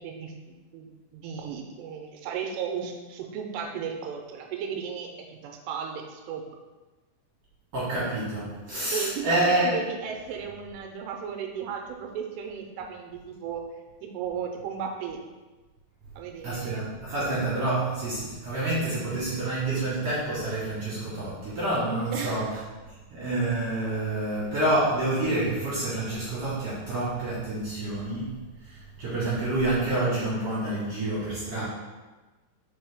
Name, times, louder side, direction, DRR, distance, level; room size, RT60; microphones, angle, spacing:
voice 1, 0.0-6.5 8.9-13.7 14.0-15.2 16.2-16.8 22.1-22.4, right 7 dB, 85° right, 3 dB, 2.7 m, -35 dB
voice 2, 7.7-9.8 16.4-22.6 23.1-31.6, right 2 dB, 55° right, -9 dB, 2.2 m, -28 dB
5.4 x 5.3 x 3.6 m, 1.2 s
omnidirectional pair, 4.9 m